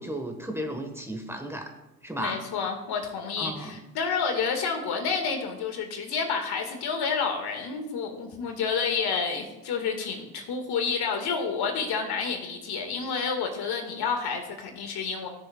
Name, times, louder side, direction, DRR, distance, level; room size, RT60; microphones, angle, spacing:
voice 1, 0.0-1.7 2.0-2.4 3.4-3.8, equal, 5° right, 4 dB, 1.5 m, -34 dB
voice 2, 2.2-15.3, left 5 dB, 55° left, 4 dB, 2.1 m, -29 dB
18.0 x 6.8 x 2.4 m, 1.0 s
hypercardioid pair, 65°, 46 cm